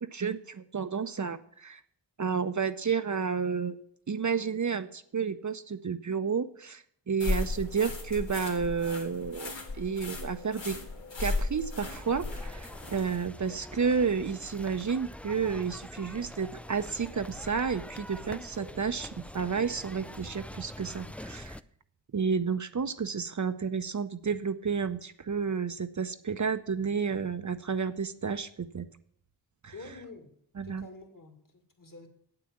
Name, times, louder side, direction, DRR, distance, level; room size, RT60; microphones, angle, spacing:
voice 1, 0.1-1.8 2.2-3.8 4.1-10.8 11.2-21.6 22.1-28.9 29.6-29.7 30.6-30.9, right 6 dB, 45° right, 10 dB, 0.7 m, -31 dB
sound 1, 7.2-13.3, left 3 dB, 80° left, 1.8 m, -35 dB
sound 2, 11.9-21.6, left 1 dB, 5° left, 0.3 m, -44 dB
voice 2, 29.7-30.3 30.6-32.1, left 3 dB, 50° left, 4 dB, 2.4 m, -48 dB
8.2 x 7.7 x 7.3 m, 0.65 s
cardioid pair, 45°, 43 cm